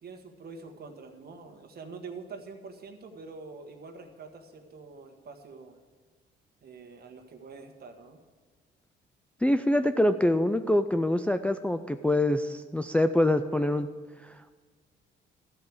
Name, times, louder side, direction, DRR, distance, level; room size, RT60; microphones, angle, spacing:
voice 1, 0.0-5.8 6.6-8.2, right 4 dB, 50° right, 4 dB, 1.5 m, -45 dB
voice 2, 9.4-13.9 14.2-14.5, left 1 dB, 5° left, 8 dB, 0.4 m, -25 dB
13.5 x 4.8 x 8.6 m, 1.4 s
cardioid pair, 90°, 20 cm